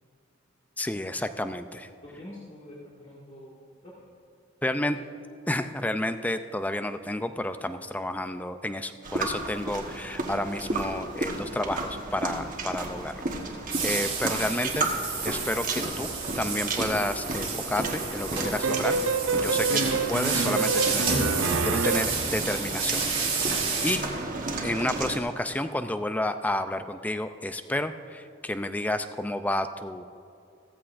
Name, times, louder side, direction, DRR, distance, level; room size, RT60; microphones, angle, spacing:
voice 1, 0.8-1.9 4.6-5.0 5.5-13.1 13.8-14.9 15.2-16.1 16.4-18.9 19.4-23.0 23.8-24.0 24.6-30.0, left 1 dB, 10° left, 9 dB, 0.4 m, -30 dB
voice 2, 2.0-4.1 4.9-5.0, left 1 dB, 35° left, -7 dB, 1.8 m, -46 dB
sound 1, 9.0-25.2, right 2 dB, 40° right, 1.2 m, -33 dB
sound 2, 13.7-24.0, right 4 dB, 25° right, 1.9 m, -31 dB
sound 3, 18.6-22.3, right 4 dB, 80° right, 0.5 m, -27 dB
15.5 x 14.5 x 2.5 m, 2.5 s
head